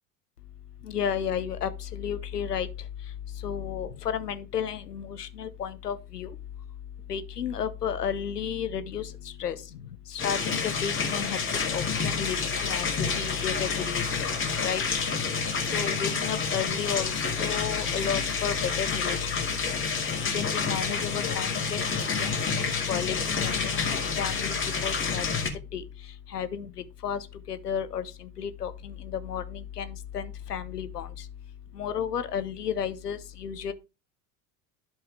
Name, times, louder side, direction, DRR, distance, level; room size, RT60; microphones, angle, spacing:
voice 1, 0.8-6.4 7.1-14.3 14.6-14.8 15.6-19.6 19.9-21.9 22.2-31.3 31.7-33.7, left 8 dB, 90° left, 0.9 m, -33 dB
sound 1, 10.2-25.5, left 5 dB, 25° left, 2.2 m, -29 dB
11.0 x 4.6 x 3.5 m
hypercardioid pair, 80°, 46 cm